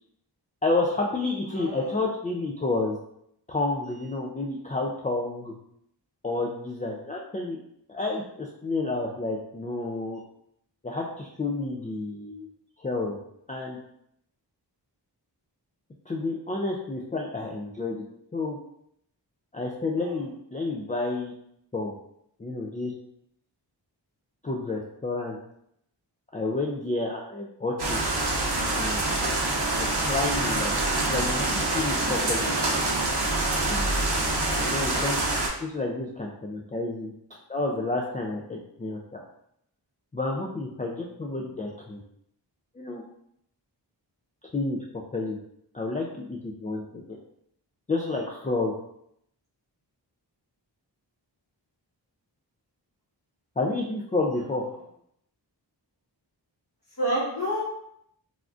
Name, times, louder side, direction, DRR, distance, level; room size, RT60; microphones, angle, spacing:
voice 1, 0.6-3.0 3.5-5.5 6.2-7.6 7.9-10.2 10.8-12.5 12.8-13.2 13.5-13.8 16.1-18.0 18.3-18.6 19.5-21.3 21.7-21.9 22.4-22.9 24.4-25.4 26.3-28.0 28.7-29.0 29.7-30.7 31.1-32.5 33.6-33.9 34.5-35.2 35.6-37.1 37.5-39.2 40.1-42.0 42.8-43.0 44.5-44.8 45.1-45.4 45.7-47.2 47.9-48.7 53.6-54.6, left 2 dB, 20° left, -1 dB, 0.3 m, -30 dB
voice 2, 1.5-1.9 20.0-20.2 34.9-35.2 57.0-57.6, right 1 dB, 50° left, -9 dB, 1.4 m, -29 dB
sound 1, 27.8-35.5, right 2 dB, 60° right, 0.7 m, -26 dB
3.4 x 2.5 x 2.4 m, 0.74 s
wide cardioid pair, 50°, 44 cm